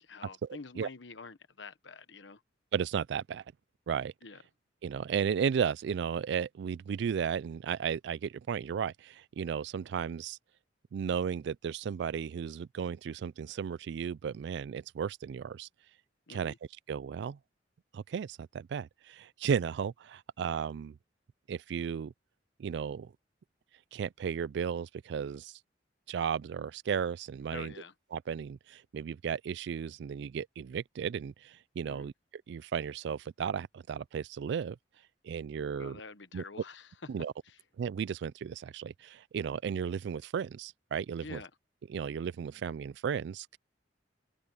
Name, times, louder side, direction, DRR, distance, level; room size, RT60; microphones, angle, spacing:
voice 1, 0.0-2.4 4.2-4.4 16.3-16.6 27.5-27.9 31.8-32.1 35.7-36.9 37.4-37.6 41.2-41.5, left 4 dB, 80° left, 1.2 m, -47 dB
voice 2, 2.7-3.4 3.9-4.1 4.8-10.4 10.9-15.7 16.3-16.5 16.9-17.4 17.9-21.0 21.5-22.1 22.6-23.1 23.9-25.6 26.1-27.7 28.1-32.1 32.5-34.8 35.2-36.0 36.3-36.4 37.1-37.3 37.8-41.4 41.9-43.6, right 7 dB, 70° right, 0.3 m, -34 dB
head